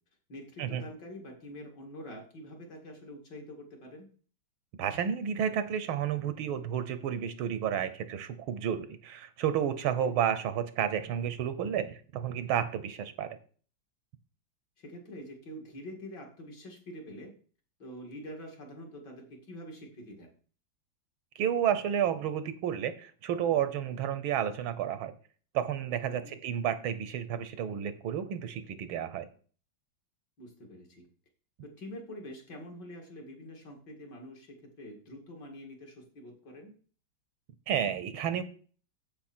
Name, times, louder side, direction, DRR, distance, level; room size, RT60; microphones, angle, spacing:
voice 1, 0.3-4.1 10.0-10.1 14.8-17.3 17.8-20.3 26.1-26.4 30.4-31.1 31.6-36.7, equal, 60° left, 1 dB, 3.0 m, -46 dB
voice 2, 4.8-13.4 21.4-25.1 25.5-29.3 37.7-38.4, right 9 dB, 85° right, 13 dB, 1.7 m, -31 dB
8.8 x 7.9 x 4.4 m, 0.42 s
omnidirectional pair, 2.2 m